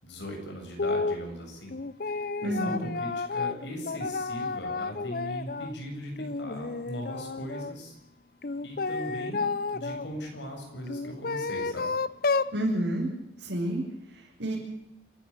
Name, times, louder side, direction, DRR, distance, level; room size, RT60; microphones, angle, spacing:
voice 1, 0.0-1.8 2.4-7.9 8.6-9.5 9.7-11.9, equal, 85° left, 2 dB, 7.7 m, -39 dB
sound 1, 0.8-1.2 1.7-5.7 6.2-7.7 8.4-10.1 10.9-12.6, left 4 dB, 55° left, 0.7 m, -31 dB
voice 2, 2.4-2.8 12.5-13.1 13.4-13.8 14.4-14.6, right 1 dB, 85° right, -6 dB, 6.6 m, -28 dB
28.0 x 12.5 x 8.7 m, 0.85 s
head